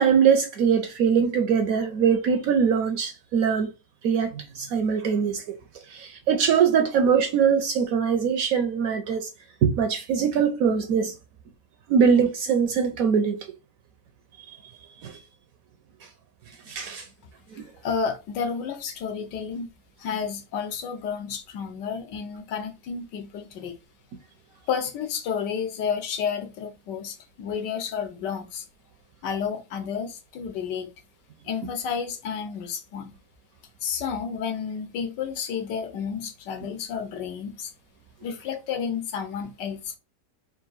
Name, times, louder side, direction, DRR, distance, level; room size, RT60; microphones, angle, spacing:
voice 1, 0.0-3.7 4.0-5.4 5.9-9.3 9.6-11.1 11.9-13.4 14.5-14.6 15.0-15.1 16.7-17.0, right 7 dB, 70° right, 0.9 m, -22 dB
voice 2, 17.8-19.7 20.0-23.7 24.7-28.6 29.2-30.9 31.4-33.2 33.8-37.7 38.2-40.0, left 6 dB, 80° left, 1.4 m, -31 dB
3.6 x 2.5 x 3.9 m
omnidirectional pair, 1.8 m